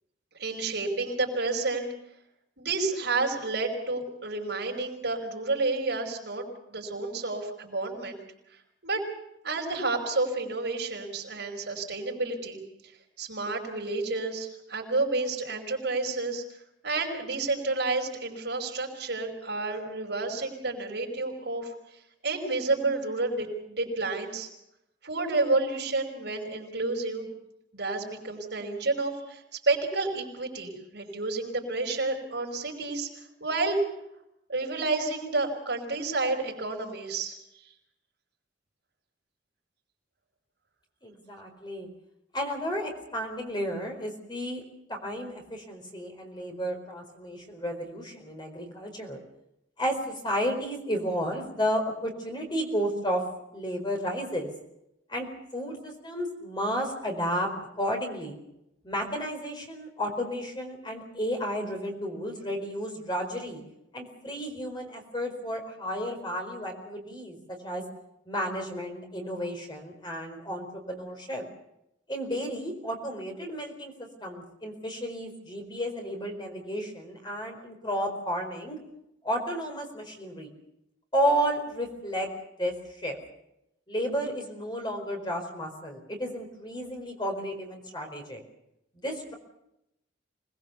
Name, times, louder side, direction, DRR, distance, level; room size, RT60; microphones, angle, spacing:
voice 1, 0.3-1.9 2.6-8.2 8.8-9.1 9.4-12.6 13.2-16.4 16.8-24.5 25.0-27.3 27.7-33.8 34.5-37.7, right 3 dB, 60° right, 1 dB, 5.5 m, -30 dB
voice 2, 41.0-41.9 42.3-44.6 44.9-49.2 49.8-53.2 53.5-54.5 55.1-57.5 57.8-58.4 58.8-63.6 63.9-67.8 68.3-71.4 72.1-73.9 74.2-78.8 79.2-80.5 81.1-82.3 82.6-82.8 83.0-83.2 83.9-88.4 88.9-89.3, equal, 25° left, 2 dB, 4.5 m, -32 dB
26.0 x 20.0 x 7.1 m, 0.83 s
head